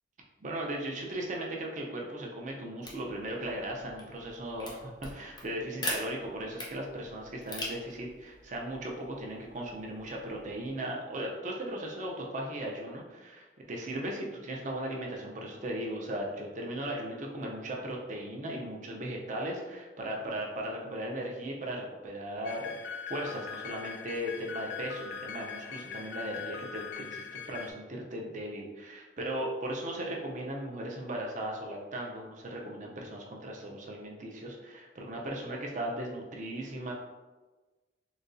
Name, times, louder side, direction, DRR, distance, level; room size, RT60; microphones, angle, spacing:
voice 1, 0.4-36.9, right 1 dB, 40° right, -1 dB, 0.5 m, -37 dB
sound 1, 2.8-10.7, left 1 dB, 20° left, 0.6 m, -43 dB
sound 2, 22.4-27.7, left 7 dB, 70° left, 0.3 m, -41 dB
3.9 x 2.3 x 2.5 m, 1.2 s
head